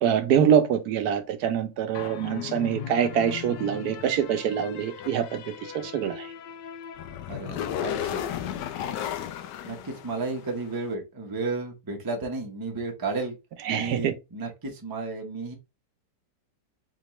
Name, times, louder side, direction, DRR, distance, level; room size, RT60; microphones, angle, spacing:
voice 1, 0.0-6.3 13.7-14.1, right 8 dB, 70° right, 1.1 m, -25 dB
sound 1, 1.9-10.6, left 10 dB, 85° left, 1.2 m, -35 dB
voice 2, 7.3-8.2 9.6-13.4 13.7-15.5, right 3 dB, 25° right, 0.4 m, -33 dB
3.8 x 3.7 x 3.0 m
omnidirectional pair, 1.8 m